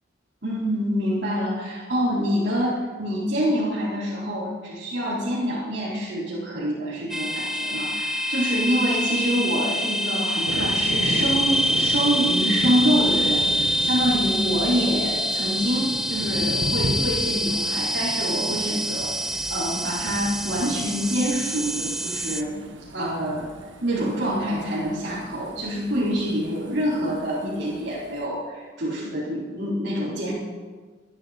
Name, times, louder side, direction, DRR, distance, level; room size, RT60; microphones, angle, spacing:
voice 1, 0.4-22.6 22.9-23.5 23.8-30.3, equal, 65° right, -12 dB, 4.6 m, -26 dB
sound 1, 7.1-22.4, equal, ahead, 0.7 m, -26 dB
Thunder, 10.5-28.3, right 1 dB, 90° right, 1.6 m, -36 dB
25.0 x 11.0 x 4.5 m, 1.5 s
head